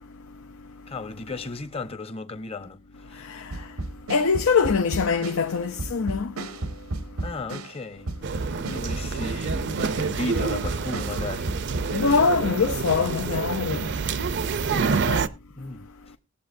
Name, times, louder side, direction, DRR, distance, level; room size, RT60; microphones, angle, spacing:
voice 1, 0.9-3.5 7.2-8.1 8.6-11.5 11.8-11.9 14.6-16.1, left 3 dB, 30° left, 0.9 m, -35 dB
sound 1, 3.5-12.4, right 2 dB, 85° right, 0.9 m, -33 dB
voice 2, 4.1-6.3 11.9-13.9, left 5 dB, 80° left, 0.6 m, -23 dB
sound 2, 8.2-15.3, right 5 dB, 55° right, 0.5 m, -28 dB
20.0 x 7.7 x 2.6 m
head